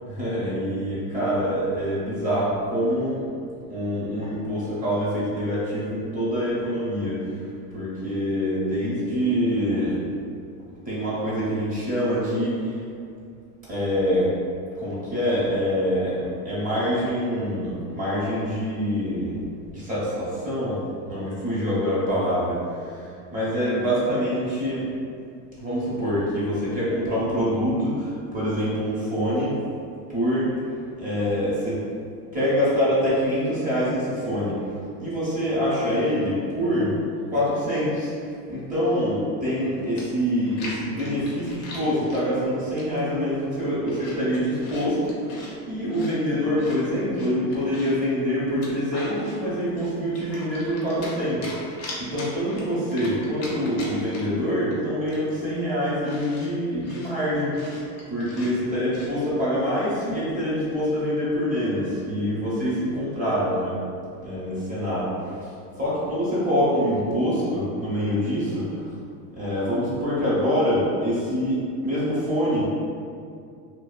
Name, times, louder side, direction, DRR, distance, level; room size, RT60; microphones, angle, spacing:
voice 1, 0.0-3.2 3.7-7.4 7.7-10.0 10.8-12.8 13.7-14.3 14.8-19.4 19.7-23.0 23.3-24.9 25.6-29.6 30.1-30.4 31.0-31.8 32.3-36.9 37.3-38.1 38.5-57.5 58.1-63.8 64.2-65.1 65.8-68.9 69.4-72.6, equal, 15° right, -9 dB, 0.6 m, -25 dB
Chewing mastication, 40.0-42.2 42.8-43.1 43.5-45.5 45.9-48.0 48.5-49.4 49.8-51.2 51.4-54.4 54.7-54.8 55.1-59.1, left 1 dB, 35° left, 0.4 m, -40 dB
2.7 x 2.0 x 2.3 m, 2.3 s
supercardioid pair, 130°, 50 cm